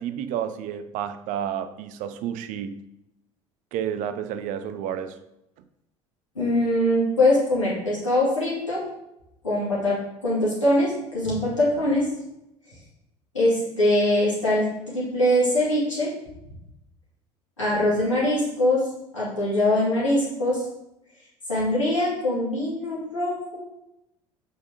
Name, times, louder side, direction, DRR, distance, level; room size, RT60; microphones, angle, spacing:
voice 1, 0.0-2.8 3.7-5.2, right 9 dB, 55° right, 0.6 m, -30 dB
voice 2, 6.3-8.8 9.4-12.1 13.3-14.7 14.9-16.1 17.6-18.9 19.1-20.6 21.5-23.6, left 1 dB, 90° left, 2.4 m, -22 dB
5.6 x 4.0 x 5.0 m
figure-of-eight pair, 65°, 16 cm